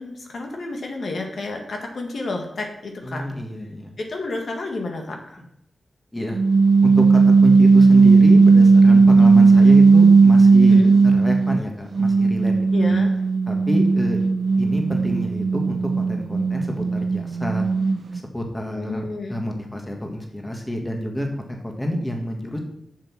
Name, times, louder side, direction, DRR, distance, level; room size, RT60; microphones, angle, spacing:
voice 1, 0.0-3.2 4.0-5.4 9.3-9.4 10.7-10.9 12.7-13.1 18.8-19.4, left 2 dB, 65° left, 2 dB, 1.8 m, -30 dB
voice 2, 3.0-3.9 6.1-6.4 6.8-12.5 12.9-13.0 13.5-14.2 14.6-17.6 18.1-22.6, equal, 10° left, 2 dB, 1.7 m, -28 dB
sound 1, 6.3-11.6 12.0-18.2, right 4 dB, 60° right, 0.6 m, -15 dB
7.6 x 6.9 x 5.9 m, 0.80 s
wide cardioid pair, 105°, 0 cm